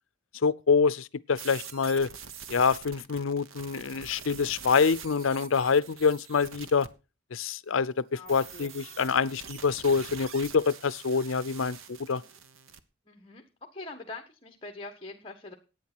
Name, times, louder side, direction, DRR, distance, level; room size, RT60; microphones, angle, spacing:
voice 1, 0.4-2.1 2.5-6.9 7.3-12.2, left 5 dB, 75° left, 0.6 m, -26 dB
sound 1, 1.4-6.9 8.3-12.8, right 7 dB, 85° right, 1.1 m, -45 dB
voice 2, 8.1-8.7 13.1-13.4 13.7-15.5, left 2 dB, 25° left, 1.4 m, -43 dB
11.5 x 9.1 x 6.1 m
head